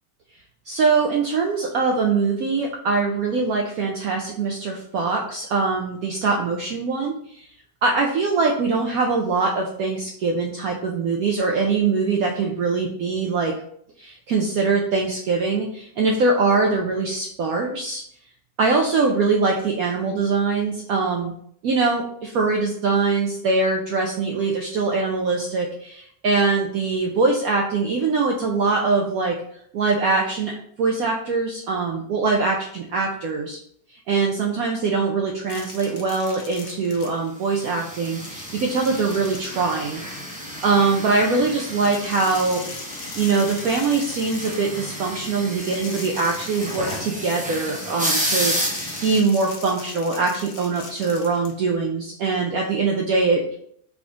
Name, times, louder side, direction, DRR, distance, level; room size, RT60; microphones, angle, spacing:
voice 1, 0.7-7.5 7.8-13.6 14.0-18.0 18.6-21.3 21.6-29.4 29.7-30.5 30.8-33.6 33.9-40.2 40.6-42.6 43.2-53.6, right 4 dB, 85° right, 1 dB, 0.8 m, -22 dB
sound 1, 35.5-37.4 37.8-40.7 41.7-44.7 45.4-47.8 48.4-51.5, left 4 dB, 65° left, 1.4 m, -40 dB
sound 2, 37.6-49.2, equal, 10° right, 0.3 m, -31 dB
3.8 x 3.5 x 3.6 m, 0.67 s
omnidirectional pair, 2.1 m